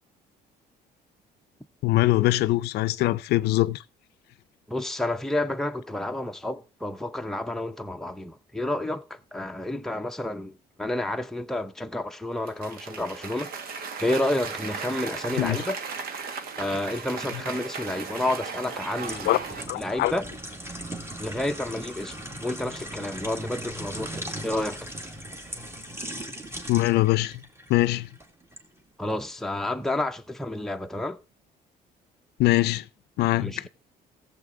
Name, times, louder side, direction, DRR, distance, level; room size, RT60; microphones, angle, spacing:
voice 1, 1.8-3.8 15.4-15.6 19.3-19.4 19.7-20.1 26.7-27.4 27.7-28.1 32.4-32.9 33.2-33.7, left 17 dB, 75° left, 0.5 m, -22 dB
voice 2, 4.7-10.5 10.8-13.5 14.0-15.8 16.6-19.3 19.8-20.2 21.2-24.9 29.0-31.2 33.4-33.7, left 1 dB, ahead, 0.8 m, -30 dB
Cheering / Applause, 12.4-19.6, right 5 dB, 60° right, 1.6 m, -36 dB
sound 1, 18.7-28.7 29.1-29.3, right 1 dB, 15° right, 2.0 m, -39 dB
15.0 x 7.6 x 3.8 m
cardioid pair, 110°, 17 cm